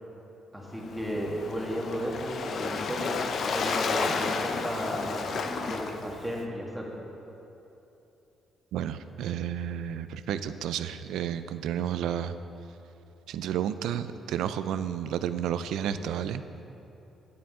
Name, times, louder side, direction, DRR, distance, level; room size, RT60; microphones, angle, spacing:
voice 1, 0.5-3.1 3.5-6.9, equal, 5° right, -3 dB, 1.8 m, -34 dB
Waves surf, 0.7-6.4, left 4 dB, 60° left, 0.5 m, -32 dB
voice 2, 8.7-12.3 13.3-16.4, right 9 dB, 85° right, 12 dB, 0.3 m, -31 dB
9.3 x 8.6 x 3.7 m, 3.0 s
cardioid pair, 90°, 0 cm